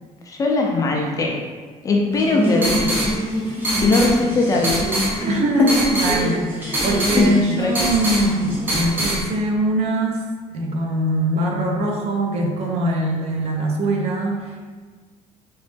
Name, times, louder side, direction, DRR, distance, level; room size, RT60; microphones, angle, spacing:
voice 1, 0.3-1.4 1.8-3.1 3.8-4.8 5.2-5.3 5.6-6.0 6.7-6.8 7.1-7.3 7.6-7.7, left 3 dB, 25° left, 0 dB, 0.4 m, -20 dB
sound 1, 2.1-9.2, equal, 15° right, 0.7 m, -23 dB
voice 2, 5.3-10.2 10.5-14.6, right 1 dB, 50° right, 1 dB, 0.5 m, -22 dB
3.1 x 3.0 x 3.2 m, 1.4 s
cardioid pair, 175°, 14 cm